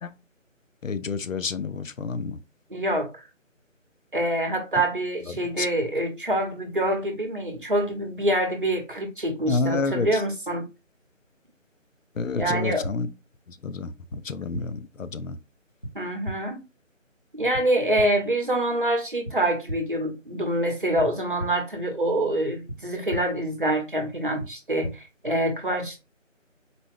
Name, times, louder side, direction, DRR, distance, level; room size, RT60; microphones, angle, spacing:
voice 1, 0.8-2.3 9.5-10.1 12.2-13.1 13.6-13.9 14.3-15.3, left 4 dB, 80° left, 0.6 m, -28 dB
voice 2, 2.7-3.2 4.1-10.6 12.4-12.9 15.9-16.6 17.3-26.0, right 1 dB, 40° right, 0.9 m, -26 dB
sound 1, 12.4-12.5 12.8-12.9 14.1-14.2 14.5-14.6 15.8-15.9 16.2-16.3 17.5-17.6 17.9-18.1 19.2-19.3 19.7-19.8 21.0-21.1 21.4-21.5 22.7-22.8 23.1-23.2 24.4-24.5 24.8-24.9, equal, 25° left, 0.8 m, -32 dB
4.1 x 2.2 x 3.2 m
figure-of-eight pair, 165°, 39 cm